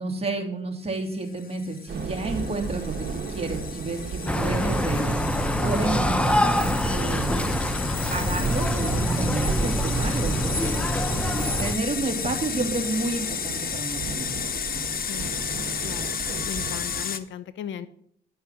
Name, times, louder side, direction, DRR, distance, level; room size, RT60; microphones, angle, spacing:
voice 1, 0.0-2.9 3.3-5.2 5.6-6.3 6.9-7.6 8.1-10.8 11.6-14.3, right 2 dB, 30° right, 2 dB, 2.7 m, -30 dB
sound 1, 1.1-17.2, left 7 dB, 45° left, 0.9 m, -33 dB
sound 2, 1.9-17.0, right 4 dB, 55° right, 1.6 m, -34 dB
sound 3, 4.3-11.8, equal, 5° left, 0.7 m, -25 dB
voice 2, 15.1-15.5 15.8-16.2 16.4-17.9, left 9 dB, 70° left, 13 dB, 0.8 m, -37 dB
10.5 x 5.6 x 7.3 m, 0.66 s
cardioid pair, 90°, 20 cm